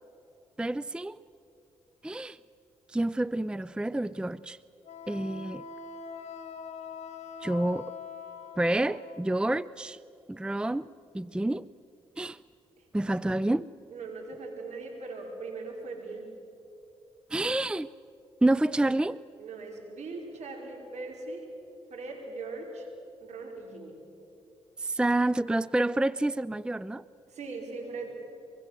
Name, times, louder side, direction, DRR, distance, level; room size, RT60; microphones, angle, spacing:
voice 1, 0.6-1.2 2.0-2.4 2.9-4.6 5.1-5.7 7.4-7.9 8.6-10.0 10.3-10.9 11.1-11.7 12.2-12.4 12.9-13.7 17.3-17.9 18.4-19.2 24.8-27.0, right 1 dB, 5° right, 18 dB, 0.5 m, -28 dB
Wind instrument woodwind instrument, 4.8-9.3, left 6 dB, 65° left, 2.1 m, -43 dB
voice 2, 13.9-16.3 19.4-21.5 21.9-22.9 23.2-24.0 27.3-28.2, right 3 dB, 65° right, 1 dB, 5.1 m, -40 dB
23.5 x 23.5 x 7.5 m, 2.7 s
hypercardioid pair, 45°, 12 cm